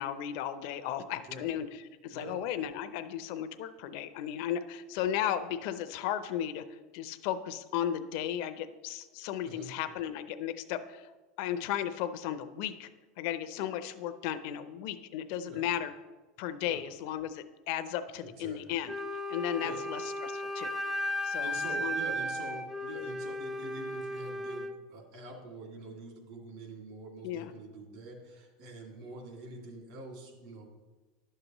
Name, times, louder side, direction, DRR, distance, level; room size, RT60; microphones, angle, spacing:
voice 1, 0.0-11.1 11.4-12.9 13.2-15.9 16.4-19.0 19.3-20.7 21.2-22.0 27.2-27.5, left 10 dB, 65° left, 10 dB, 0.5 m, -35 dB
voice 2, 9.4-9.7 15.5-15.7 16.7-16.8 18.2-18.6 19.6-19.8 21.1-30.6, right 2 dB, 65° right, 0 dB, 2.3 m, -45 dB
Wind instrument woodwind instrument, 18.9-24.8, left 1 dB, ahead, 0.5 m, -35 dB
11.0 x 6.6 x 3.0 m, 1.2 s
supercardioid pair, 140°, 0 cm